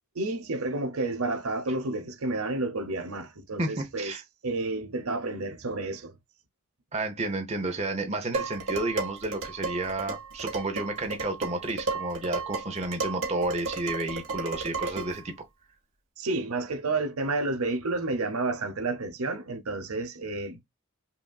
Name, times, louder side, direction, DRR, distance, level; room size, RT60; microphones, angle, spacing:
voice 1, 0.2-4.1 4.4-6.1 16.2-20.6, right 2 dB, 90° right, 0.9 m, -30 dB
voice 2, 3.6-4.2 6.9-15.3, right 2 dB, 30° right, 0.8 m, -31 dB
Dishes pots and pans, 8.3-15.2, right 4 dB, 60° right, 1.4 m, -34 dB
5.7 x 2.6 x 2.3 m
head